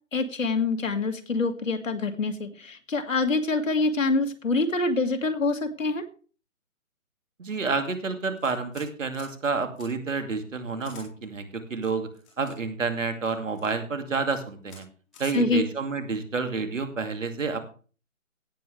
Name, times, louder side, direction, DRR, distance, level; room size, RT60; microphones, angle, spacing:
voice 1, 0.1-6.0 15.3-15.6, left 3 dB, 70° left, 7 dB, 2.1 m, -25 dB
voice 2, 7.4-12.1 12.4-14.9 15.2-17.6, right 4 dB, 65° right, 7 dB, 2.5 m, -29 dB
sound 1, 8.4-8.9 9.1-9.3 9.7-9.9 10.8-11.1 11.8-12.5 13.2-13.7 14.2-14.4 14.7-14.8 15.1-15.3, left 3 dB, ahead, 0.6 m, -49 dB
17.0 x 7.9 x 3.3 m, 0.37 s
figure-of-eight pair, 150°, 41 cm